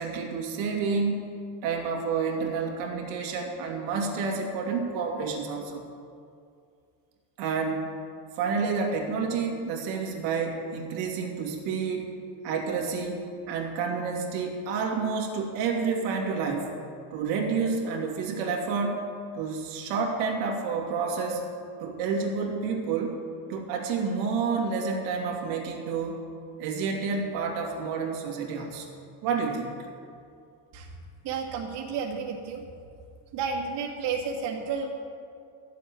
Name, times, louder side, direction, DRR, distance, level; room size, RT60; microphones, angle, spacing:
voice 1, 0.0-1.3 1.6-5.8 7.4-7.9 8.4-12.1 12.4-16.7 17.1-19.0 19.3-21.4 21.8-23.2 23.5-26.2 26.6-28.9 29.2-29.7, right 5 dB, 85° right, 0 dB, 2.7 m, -29 dB
voice 2, 31.2-32.6 33.3-34.9, right 5 dB, 55° right, -2 dB, 2.4 m, -31 dB
13.5 x 7.9 x 9.7 m, 2.4 s
cardioid pair, 145°, 49 cm